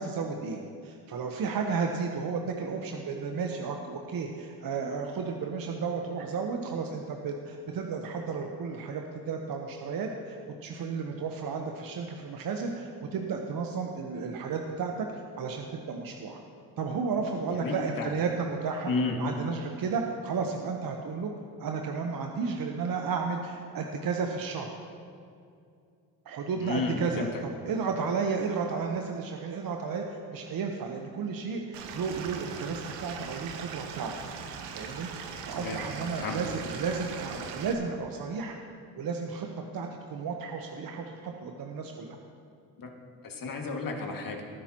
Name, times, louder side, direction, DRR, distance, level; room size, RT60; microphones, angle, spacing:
voice 1, 0.0-15.1 15.4-16.4 16.8-18.9 19.2-21.3 21.6-24.7 26.2-34.1 34.7-35.1 35.4-38.6 38.9-39.5 39.7-42.2, right 5 dB, 55° right, 3 dB, 1.1 m, -33 dB
voice 2, 17.5-18.1 18.9-19.2 26.6-27.3 35.6-35.8 36.2-36.4 42.8-42.9 43.2-44.4, left 3 dB, 50° left, 1 dB, 2.2 m, -32 dB
Stream / Liquid, 31.7-37.7, right 6 dB, 80° right, 1.1 m, -40 dB
19.0 x 9.9 x 3.0 m, 2.4 s
hypercardioid pair, 60°, 42 cm